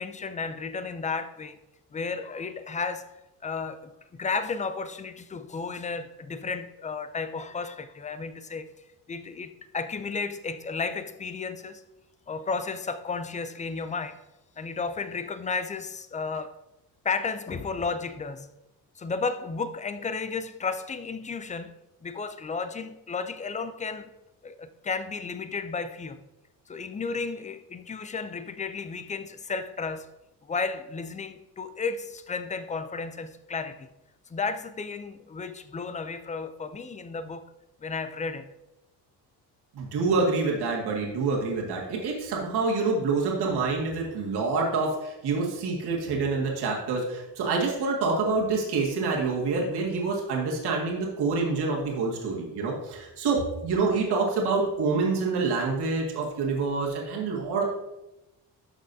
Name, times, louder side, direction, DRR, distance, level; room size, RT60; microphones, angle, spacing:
voice 1, 0.0-1.6 1.9-3.1 3.4-3.8 4.1-8.7 9.1-11.8 12.3-14.2 14.6-16.5 17.0-18.5 19.0-21.7 22.0-24.1 24.4-26.2 26.7-30.1 30.5-33.9 34.3-37.4 37.8-38.5, left 4 dB, 20° left, 0.4 m, -33 dB
voice 2, 39.7-57.6, right 4 dB, 85° right, 1.9 m, -27 dB
11.5 x 6.3 x 2.7 m
cardioid pair, 155°, 38 cm